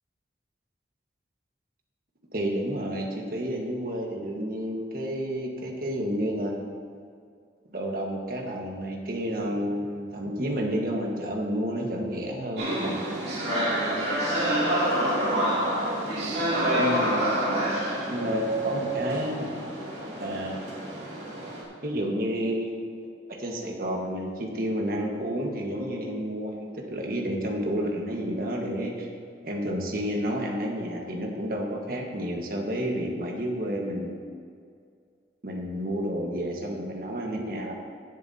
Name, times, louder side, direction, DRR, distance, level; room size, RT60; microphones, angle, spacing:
voice 1, 2.3-6.5 7.7-13.2 16.8-17.5 18.1-19.5 20.2-20.6 21.8-23.0 23.4-29.1 29.4-34.2 35.4-37.7, equal, 55° right, 0 dB, 1.4 m, -30 dB
sound 1, 12.6-21.6, right 1 dB, 70° right, 2.6 m, -27 dB
18.0 x 7.3 x 2.8 m, 2.2 s
head